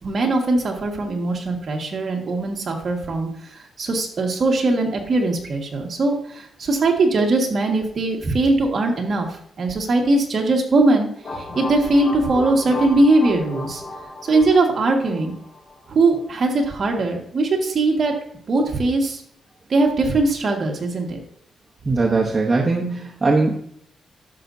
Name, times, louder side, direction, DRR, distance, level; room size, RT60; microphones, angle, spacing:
voice 1, 0.0-3.3 3.8-13.8 14.2-15.3 15.9-18.1 18.5-19.2 19.7-21.2, right 2 dB, 40° right, 1 dB, 1.7 m, -20 dB
sound 1, 11.2-16.0, left 2 dB, 55° left, 2.1 m, -34 dB
voice 2, 21.8-23.6, right 3 dB, 25° right, -2 dB, 0.9 m, -20 dB
11.0 x 6.7 x 2.7 m, 0.66 s
wide cardioid pair, 155°, 0 cm